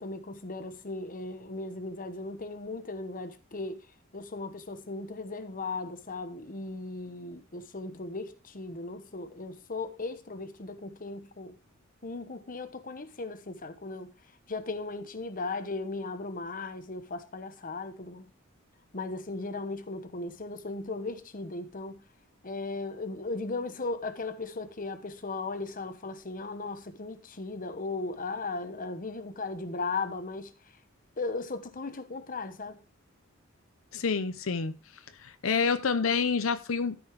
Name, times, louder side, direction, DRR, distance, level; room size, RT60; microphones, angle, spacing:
voice 1, 0.0-3.9 4.1-11.6 12.0-14.1 14.5-18.3 18.9-22.0 22.4-30.5 31.2-32.8, left 3 dB, 45° left, 1.1 m, -37 dB
voice 2, 33.9-34.7 35.2-37.0, left 5 dB, 90° left, 0.7 m, -28 dB
13.0 x 5.5 x 4.7 m
head